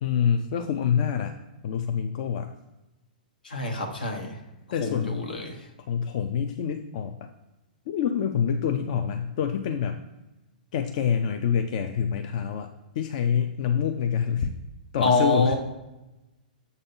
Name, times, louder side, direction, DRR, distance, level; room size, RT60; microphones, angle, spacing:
voice 1, 0.0-1.3 1.6-2.5 4.7-5.2 5.9-7.3 7.9-10.0 10.7-12.7 13.0-14.5 14.9-15.6, left 7 dB, 55° left, 6 dB, 0.4 m, -26 dB
voice 2, 3.4-4.4 4.8-5.6 15.0-15.6, left 3 dB, 85° left, 3 dB, 1.2 m, -26 dB
7.0 x 2.7 x 5.4 m, 1.0 s
hypercardioid pair, 125°, 5 cm